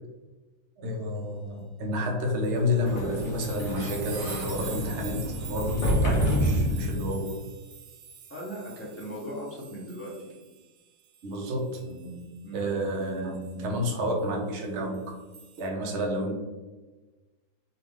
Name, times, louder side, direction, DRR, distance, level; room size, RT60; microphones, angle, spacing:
voice 1, 0.8-5.2 5.5-7.3 11.2-12.2 12.5-15.1 15.6-16.3, left 1 dB, 60° right, 0 dB, 0.7 m, -30 dB
sound 1, 2.4-10.8 11.1-12.2 13.4-13.5 14.9-15.7, right 7 dB, 75° right, 1.3 m, -45 dB
Sliding door, 2.6-7.4, equal, 65° left, 1.1 m, -29 dB
voice 2, 8.3-10.4 12.4-12.7, right 1 dB, 20° left, -6 dB, 0.3 m, -38 dB
4.6 x 2.5 x 3.2 m, 1.2 s
omnidirectional pair, 2.2 m